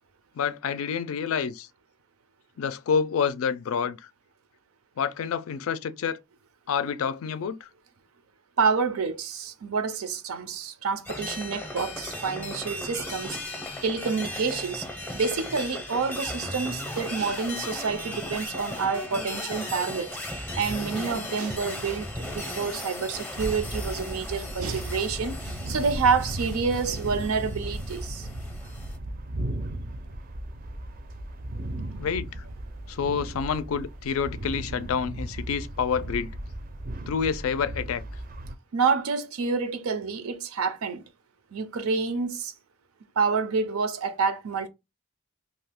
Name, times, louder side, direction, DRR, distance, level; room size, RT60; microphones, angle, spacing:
voice 1, 0.4-1.7 2.6-4.1 5.0-6.2 6.7-7.7 32.0-32.3 32.9-36.3 37.1-38.0, left 6 dB, 75° left, 0.4 m, -28 dB
voice 2, 8.6-13.5 13.8-14.9 15.1-20.2 20.5-28.3 38.7-41.0 41.5-42.5 43.2-44.7, right 5 dB, 90° right, 0.5 m, -28 dB
sound 1, 11.1-29.0, left 1 dB, 10° left, 0.6 m, -36 dB
sound 2, 23.4-38.5, right 1 dB, 40° right, 0.4 m, -36 dB
2.7 x 2.4 x 3.4 m
head